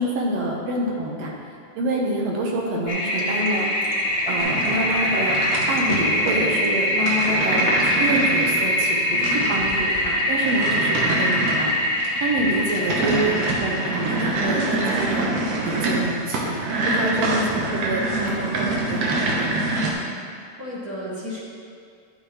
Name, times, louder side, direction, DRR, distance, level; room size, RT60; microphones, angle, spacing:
voice 1, 0.0-1.3 1.8-3.7 4.3-11.8 12.2-15.3 15.6-19.6, right 1 dB, 65° right, -1 dB, 2.1 m, -27 dB
Toilet flush, 2.9-14.4, left 1 dB, 80° left, 0.5 m, -23 dB
sound 1, 4.4-19.9, right 2 dB, 90° right, 2.6 m, -26 dB
voice 2, 9.2-9.6 17.6-18.0 20.6-21.4, left 1 dB, 35° right, -7 dB, 1.7 m, -34 dB
11.5 x 8.1 x 3.2 m, 2.3 s
omnidirectional pair, 3.4 m